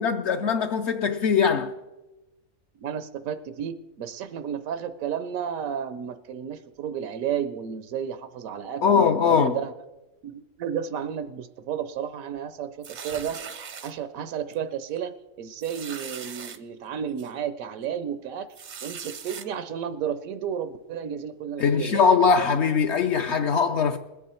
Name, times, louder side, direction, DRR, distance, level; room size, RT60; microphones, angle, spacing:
voice 1, 0.0-1.7 8.8-9.6 21.6-24.0, left 6 dB, 65° left, 0.8 m, -21 dB
voice 2, 2.7-9.7 10.2-13.4 13.8-18.5 18.8-22.1, right 8 dB, 85° right, 1.1 m, -32 dB
sound 1, 12.8-13.9 14.5-14.7 15.0-15.1 15.6-16.6 17.2-17.3 18.5-19.5, right 6 dB, 50° right, 0.5 m, -39 dB
20.5 x 8.5 x 4.3 m
omnidirectional pair, 1.4 m